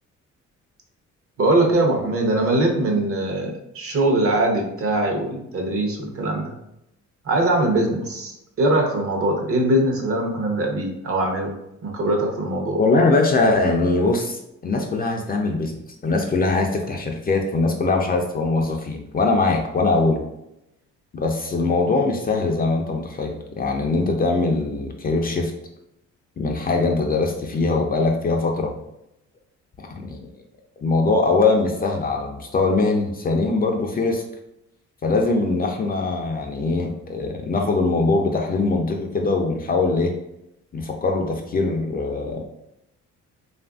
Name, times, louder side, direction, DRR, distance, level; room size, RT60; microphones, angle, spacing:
voice 1, 1.4-6.5 7.2-11.5 11.8-12.8, right 1 dB, 45° right, 1 dB, 0.8 m, -22 dB
voice 2, 12.8-20.2 21.1-25.5 26.4-28.7 29.9-30.3 30.8-34.2 35.0-40.1 40.7-42.4, left 3 dB, 30° left, 2 dB, 0.4 m, -22 dB
2.9 x 2.5 x 2.3 m, 0.85 s
cardioid pair, 90°, 30 cm